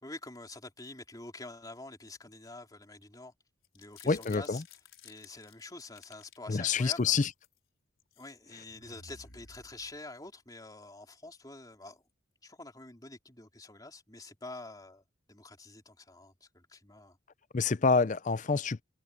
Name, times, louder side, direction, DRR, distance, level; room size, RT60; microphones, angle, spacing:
voice 1, 0.0-3.3 3.7-4.6 5.0-7.1 8.2-12.0 12.4-15.0 15.3-17.2, left 2 dB, 20° left, 3.6 m, -47 dB
sound 1, 3.6-6.4 6.7-7.6 8.0-8.3 8.7-10.3, left 5 dB, 90° left, 5.1 m, -56 dB
voice 2, 4.1-4.6 6.5-7.3 17.5-18.8, left 4 dB, 40° left, 0.5 m, -27 dB
head